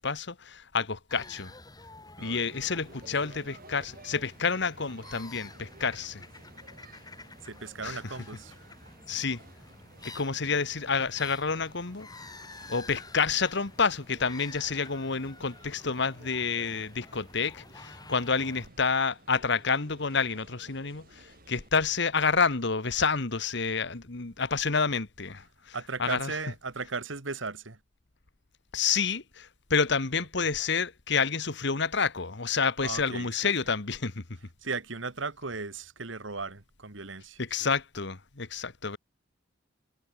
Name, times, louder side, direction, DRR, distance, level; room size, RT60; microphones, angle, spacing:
voice 1, 0.0-1.5 2.2-6.2 7.8-8.1 9.1-9.4 10.0-12.1 12.7-26.3 28.7-34.2 37.4-39.0, left 5 dB, 65° left, 1.5 m, -29 dB
sound 1, 1.1-18.7, left 2 dB, 20° left, 5.6 m, -50 dB
sound 2, 2.2-21.7, right 2 dB, 50° right, 3.7 m, -55 dB
voice 2, 7.4-8.6 18.4-18.5 25.7-27.8 32.8-33.3 34.6-37.4, right 4 dB, 80° right, 2.1 m, -36 dB
head